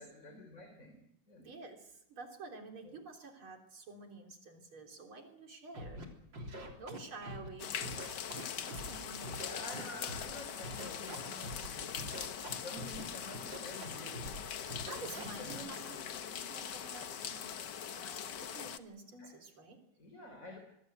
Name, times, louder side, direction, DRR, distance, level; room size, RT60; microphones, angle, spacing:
voice 1, 0.0-1.5 2.8-3.0 9.4-14.3 15.0-16.4 19.2-19.4 20.0-20.6, left 2 dB, 40° left, 5 dB, 4.1 m, -50 dB
voice 2, 1.4-6.0 6.8-8.2 8.6-9.4 14.7-17.6 17.9-19.8, right 3 dB, 85° right, 3 dB, 4.3 m, -50 dB
Scratching (performance technique), 5.7-6.1 6.3-7.5 7.8-8.9 9.2-10.3 10.6-11.7 12.0-13.0 13.3-13.9 14.1-14.4 14.7-15.5, right 1 dB, 60° right, 4.2 m, -44 dB
sound 1, 7.6-18.8, left 8 dB, 60° left, 1.6 m, -42 dB
25.0 x 20.5 x 8.0 m, 0.77 s
omnidirectional pair, 2.3 m